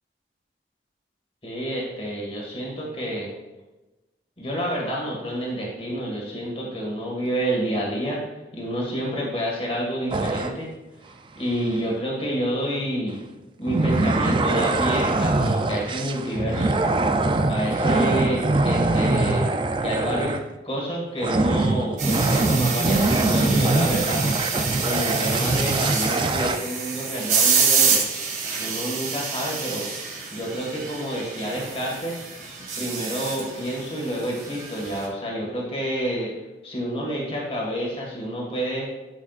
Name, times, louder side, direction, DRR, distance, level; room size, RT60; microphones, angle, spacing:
voice 1, 1.4-3.3 4.4-8.2 8.5-10.7 11.3-13.2 13.6-16.8 17.5-19.5 19.8-20.3 20.6-24.3 24.8-28.0 28.6-29.9 30.3-32.2 32.8-36.3 36.6-38.9, equal, 35° left, -3 dB, 1.8 m, -28 dB
sound 1, 10.1-10.5 13.7-20.6 21.2-26.6, right 2 dB, 30° right, 0.4 m, -23 dB
sound 2, 22.0-35.1, right 5 dB, 45° right, 1.8 m, -27 dB
12.0 x 6.1 x 2.5 m, 1.1 s
head